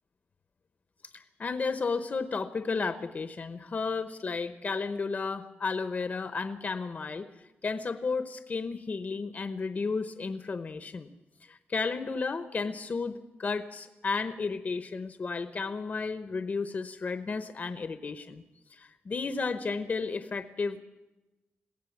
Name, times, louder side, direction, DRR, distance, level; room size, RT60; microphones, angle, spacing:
voice 1, 1.1-7.3 7.6-11.1 11.4-13.1 13.4-18.4 18.7-20.8, left 4 dB, 40° left, 10 dB, 0.9 m, -33 dB
22.0 x 16.5 x 7.2 m, 1.0 s
wide cardioid pair, 140°, 4 cm